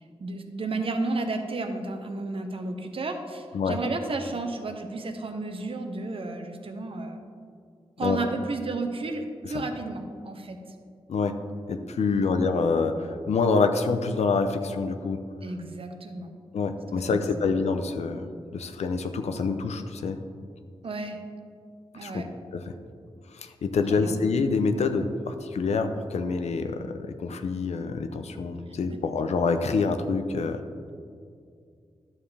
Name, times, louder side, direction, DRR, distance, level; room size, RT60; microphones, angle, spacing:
voice 1, 0.2-7.2 8.0-10.6 12.0-12.3 15.4-16.3 16.9-17.5 20.8-21.2 21.9-22.3 23.9-24.2, right 3 dB, 60° right, 5 dB, 0.9 m, -32 dB
voice 2, 11.7-15.2 16.5-20.2 22.0-22.2 22.5-22.7 23.3-30.6, left 4 dB, 90° left, 7 dB, 0.6 m, -26 dB
11.0 x 7.3 x 3.3 m, 2.3 s
wide cardioid pair, 90°, 11 cm